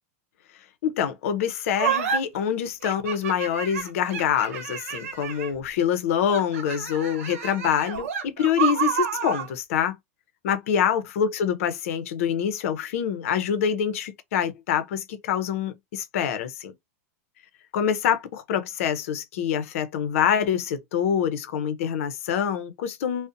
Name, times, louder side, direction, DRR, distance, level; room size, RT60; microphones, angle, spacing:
voice 1, 0.8-9.9 10.4-16.7 17.7-23.3, left 8 dB, 70° left, 0.6 m, -25 dB
sound 1, 1.8-2.2 2.8-5.6 6.3-9.5, right 8 dB, 75° right, 0.8 m, -29 dB
2.5 x 2.0 x 2.6 m
hypercardioid pair, 130°, 8 cm